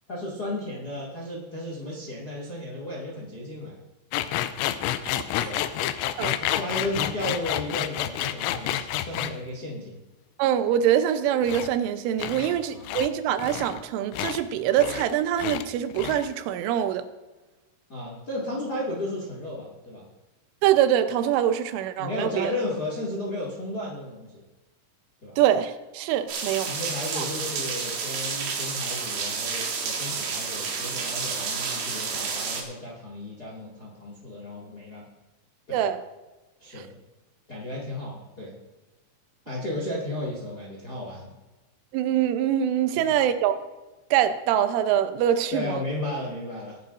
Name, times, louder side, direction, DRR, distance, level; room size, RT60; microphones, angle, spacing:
voice 1, 0.1-3.8 5.4-5.6 6.4-10.0 12.3-13.1 17.9-20.0 22.0-24.4 25.2-25.3 26.6-35.0 35.7-35.8 36.6-36.9 37.5-38.5 39.4-41.3 42.9-43.1 45.5-46.8, left 1 dB, 45° left, -4 dB, 1.3 m, -34 dB
sound 1, 4.1-9.4 11.4-11.7 12.2-12.6 12.8-13.1 13.4-13.8 14.1-14.4 14.8-15.1 15.4-15.6 15.9-16.3, left 12 dB, 85° left, 2.7 m, -29 dB
voice 2, 10.4-17.1 20.6-22.5 25.4-26.7 27.2-27.3 35.7-36.0 41.9-43.6 44.1-45.7, right 10 dB, 80° right, 9 dB, 3.2 m, -24 dB
sound 2, 26.3-32.6, right 5 dB, 60° right, 3.7 m, -30 dB
20.5 x 10.5 x 2.6 m, 1.2 s
omnidirectional pair, 5.7 m